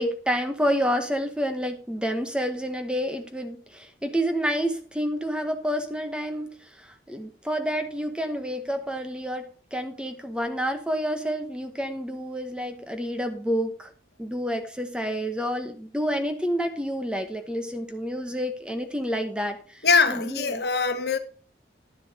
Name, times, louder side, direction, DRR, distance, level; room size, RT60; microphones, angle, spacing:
voice 1, 0.0-13.9 14.2-20.6, equal, 5° right, 1.0 m, -29 dB
voice 2, 19.8-21.2, left 5 dB, 65° left, 1.2 m, -22 dB
11.0 x 6.9 x 4.8 m
head